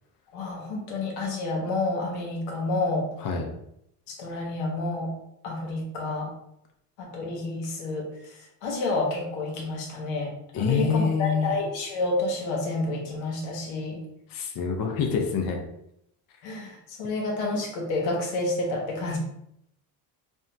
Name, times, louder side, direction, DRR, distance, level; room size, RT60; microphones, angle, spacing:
voice 1, 0.3-3.1 4.1-5.1 5.4-6.3 7.0-14.0 16.4-19.2, left 2 dB, 85° left, 0 dB, 0.9 m, -29 dB
voice 2, 10.5-11.5 14.3-15.6, left 6 dB, 45° left, 2 dB, 0.7 m, -26 dB
3.5 x 2.1 x 2.6 m, 0.77 s
supercardioid pair, 70°, 47 cm